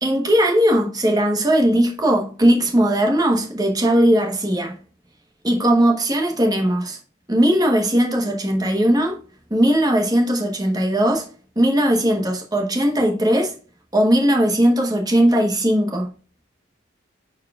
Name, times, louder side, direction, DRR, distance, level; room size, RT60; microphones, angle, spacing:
voice 1, 0.0-4.8 5.4-7.0 7.3-9.2 9.5-11.3 11.6-13.5 13.9-16.1, equal, 20° right, 1.1 m, -18 dB
9.4 x 4.7 x 2.4 m
head